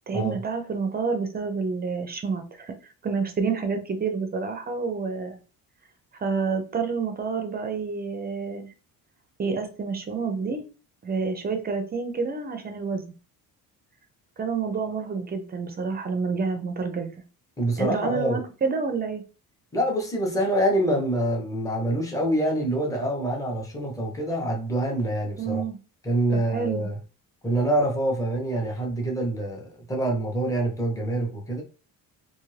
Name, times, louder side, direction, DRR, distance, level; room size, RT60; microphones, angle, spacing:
voice 1, 0.1-2.8 3.0-5.4 6.2-8.7 9.4-10.6 11.0-13.0 14.4-17.1 17.8-19.2 25.4-25.8 26.3-26.9, right 5 dB, 25° right, 0.4 m, -28 dB
voice 2, 17.6-18.4 19.7-25.6 26.0-27.0 27.4-31.6, right 1 dB, 10° left, 0.7 m, -26 dB
2.6 x 2.5 x 3.1 m
cardioid pair, 145°, 37 cm